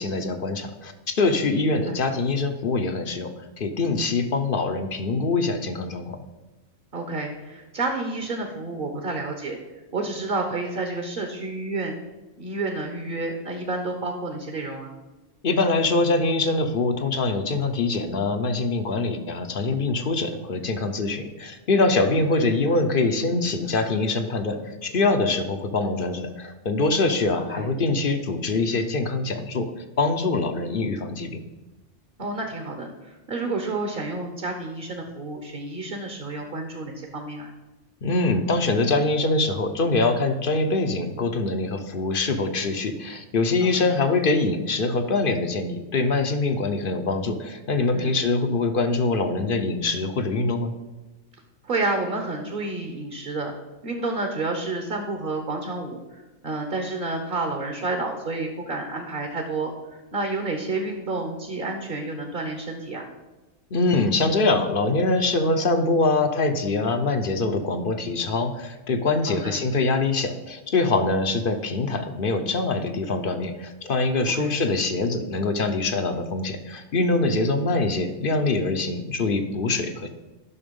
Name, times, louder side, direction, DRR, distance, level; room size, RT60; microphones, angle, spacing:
voice 1, 0.0-3.3 3.6-6.2 15.4-29.7 30.0-31.4 38.0-50.7 63.7-80.1, left 3 dB, 50° left, 8 dB, 0.9 m, -24 dB
voice 2, 6.9-9.6 9.9-12.0 12.4-14.9 27.5-27.7 32.2-37.5 43.6-43.9 47.9-48.1 51.6-53.5 53.8-63.1 69.3-69.6 74.3-74.5, right 2 dB, 45° right, 3 dB, 1.2 m, -30 dB
11.0 x 6.0 x 5.3 m, 1.1 s
omnidirectional pair, 1.3 m